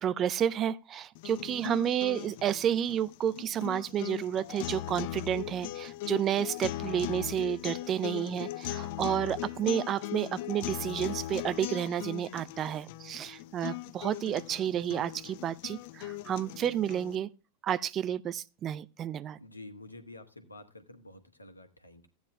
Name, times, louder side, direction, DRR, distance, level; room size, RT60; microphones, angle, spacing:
voice 1, 0.0-17.3 17.6-19.4, right 10 dB, 30° right, 0.5 m, -31 dB
sound 1, 1.2-17.2, left 15 dB, 50° left, 0.4 m, -39 dB
voice 2, 19.4-22.1, left 2 dB, 80° left, 1.2 m, -49 dB
15.0 x 9.4 x 2.3 m
figure-of-eight pair, 90°, 0 cm